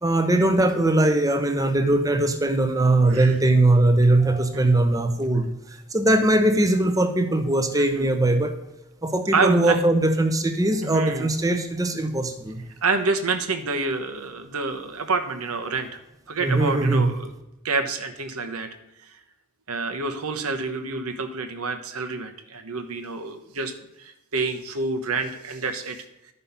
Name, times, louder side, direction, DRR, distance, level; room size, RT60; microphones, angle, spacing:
voice 1, 0.0-5.5 5.9-8.6 9.0-12.6 16.4-17.1, right 2 dB, 15° right, 8 dB, 0.8 m, -20 dB
voice 2, 7.7-8.1 9.3-9.8 10.8-11.3 12.8-16.0 16.3-17.3 17.6-18.7 19.7-23.7 24.0-26.0, right 4 dB, 85° right, 6 dB, 1.1 m, -27 dB
11.5 x 5.5 x 5.6 m, 0.91 s
head